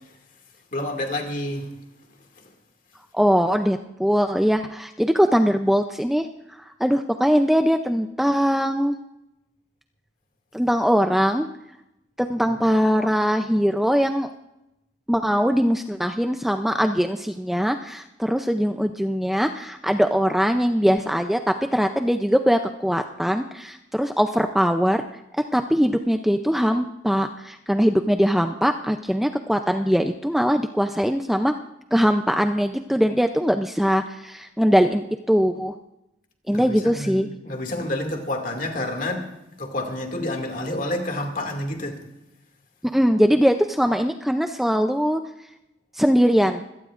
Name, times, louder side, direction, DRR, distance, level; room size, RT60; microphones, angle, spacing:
voice 1, 0.7-1.7 36.5-42.0, left 1 dB, 45° left, 2.2 m, -29 dB
voice 2, 3.1-6.3 6.8-9.0 10.5-11.5 12.2-14.3 15.1-25.0 25.3-31.5 31.9-35.7 36.5-37.3 42.9-45.2 45.9-46.6, equal, ahead, 0.4 m, -21 dB
25.0 x 17.0 x 2.5 m
head